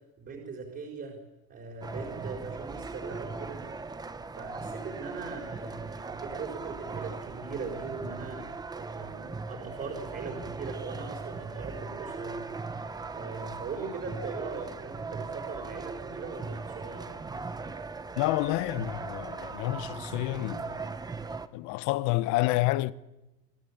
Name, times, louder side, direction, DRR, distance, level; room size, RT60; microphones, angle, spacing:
voice 1, 0.2-1.2 1.5-3.6 4.3-8.5 8.7-12.4 13.1-17.1, right 4 dB, 35° right, 4.9 m, -40 dB
sound 1, 1.8-21.5, right 4 dB, 10° right, 0.9 m, -39 dB
voice 2, 18.2-20.9 21.5-22.9, left 18 dB, 65° left, 1.0 m, -29 dB
27.5 x 17.5 x 8.6 m
cardioid pair, 140°, 32 cm